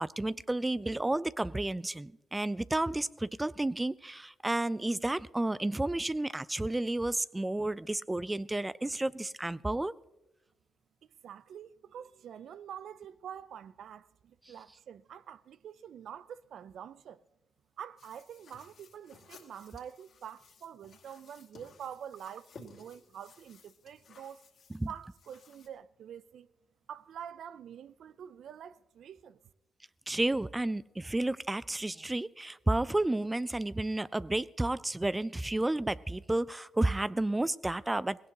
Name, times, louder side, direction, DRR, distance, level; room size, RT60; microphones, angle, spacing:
voice 1, 0.0-9.9 24.7-24.9 30.1-38.3, right 2 dB, 20° right, 0.5 m, -31 dB
voice 2, 11.2-17.2 17.8-24.4 24.9-26.5 26.9-29.4, right 9 dB, 75° right, 0.5 m, -46 dB
sound 1, 18.0-25.7, left 5 dB, 70° left, 2.3 m, -58 dB
20.0 x 17.5 x 2.9 m
supercardioid pair, 50°, 0 cm